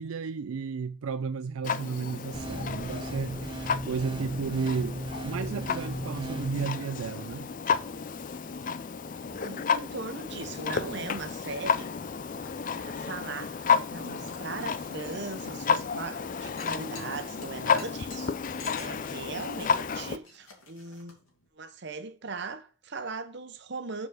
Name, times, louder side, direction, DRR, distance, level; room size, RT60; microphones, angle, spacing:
voice 1, 0.0-7.5 9.4-9.5, right 5 dB, 85° right, 0.4 m, -34 dB
Clock, 1.6-20.2, left 6 dB, 40° left, 0.4 m, -32 dB
sound 1, 2.3-6.7, right 1 dB, 25° right, 0.5 m, -36 dB
voice 2, 9.2-11.9 12.7-18.3 18.8-21.2 21.5-24.1, right 4 dB, 55° right, 0.9 m, -39 dB
sound 2, 13.3-21.5, left 4 dB, 75° left, 2.8 m, -52 dB
6.8 x 4.9 x 5.9 m
head